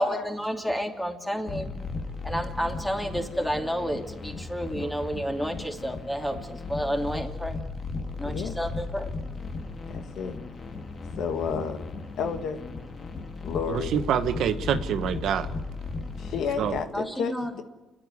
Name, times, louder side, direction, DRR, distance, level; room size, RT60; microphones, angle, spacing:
voice 1, 0.0-1.7 2.2-7.6 8.2-9.1 16.9-17.6, equal, 5° left, 3 dB, 2.7 m, -30 dB
sound 1, 1.5-16.8, left 3 dB, 45° left, 1.9 m, -36 dB
voice 2, 8.2-8.6 9.9-10.4 11.2-11.9 12.2-12.6 13.4-14.0 16.2-17.6, left 6 dB, 75° left, 8 dB, 1.6 m, -31 dB
voice 3, 13.7-15.5 16.6-16.8, right 8 dB, 80° right, 9 dB, 1.2 m, -26 dB
29.0 x 10.5 x 9.5 m, 1.2 s
cardioid pair, 90°, 0 cm